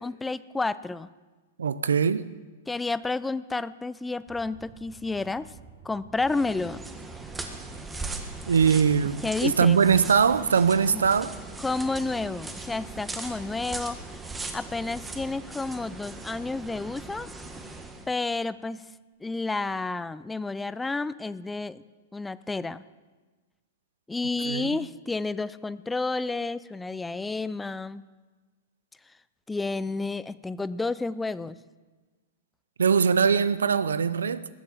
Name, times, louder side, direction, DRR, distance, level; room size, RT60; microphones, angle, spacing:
voice 1, 0.0-1.1 2.7-5.5 5.8-6.8 9.2-9.8 10.9-11.0 11.6-14.3 14.5-17.3 18.1-18.8 19.2-21.8 22.1-22.9 24.1-28.0 29.5-31.6, left 3 dB, 10° left, 0.5 m, -30 dB
voice 2, 1.6-2.3 8.5-11.3 24.4-24.7 32.8-34.5, right 6 dB, 90° right, 0.6 m, -22 dB
sound 1, 4.3-15.4, right 5 dB, 35° right, 5.6 m, -51 dB
sound 2, 6.2-18.1, right 3 dB, 10° right, 1.7 m, -39 dB
19.5 x 7.5 x 7.4 m
hypercardioid pair, 120°, 0 cm